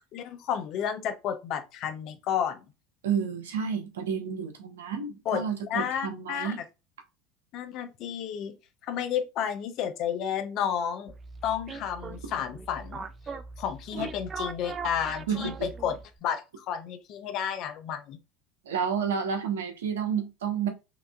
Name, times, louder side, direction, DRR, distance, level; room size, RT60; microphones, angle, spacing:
voice 1, 0.1-2.6 5.3-5.4 5.7-6.5 7.5-8.6 8.8-11.1 11.4-13.0 13.6-18.2, left 8 dB, 55° left, 0.8 m, -31 dB
voice 2, 3.0-6.6 12.1-12.2 14.0-14.1 15.3-15.7 18.6-20.7, right 7 dB, 90° right, 1.0 m, -30 dB
sound 1, 11.1-16.2, right 4 dB, 30° right, 0.5 m, -40 dB
5.8 x 2.7 x 2.4 m
hypercardioid pair, 90°, 0 cm